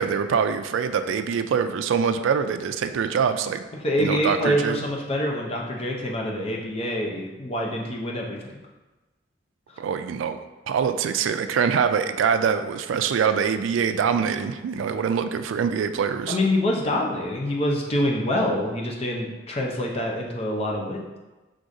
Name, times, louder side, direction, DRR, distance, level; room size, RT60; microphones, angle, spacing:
voice 1, 0.0-3.6 4.0-4.8 9.8-10.4 10.7-16.4, right 6 dB, 80° right, 9 dB, 0.3 m, -24 dB
voice 2, 3.8-8.4 16.3-21.2, left 1 dB, 30° left, -1 dB, 0.6 m, -26 dB
4.8 x 3.7 x 2.6 m, 1.1 s
head